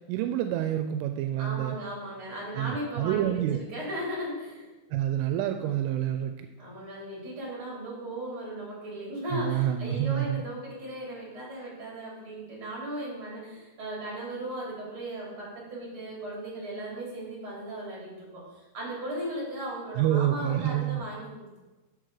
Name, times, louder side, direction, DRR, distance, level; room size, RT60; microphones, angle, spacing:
voice 1, 0.1-1.8 2.6-3.6 4.9-6.5 9.3-10.4 20.0-21.1, right 11 dB, 85° right, 7 dB, 3.0 m, -28 dB
voice 2, 1.4-4.7 6.6-21.6, right 1 dB, 30° right, -4 dB, 3.6 m, -37 dB
7.4 x 6.4 x 6.5 m, 1.1 s
omnidirectional pair, 5.6 m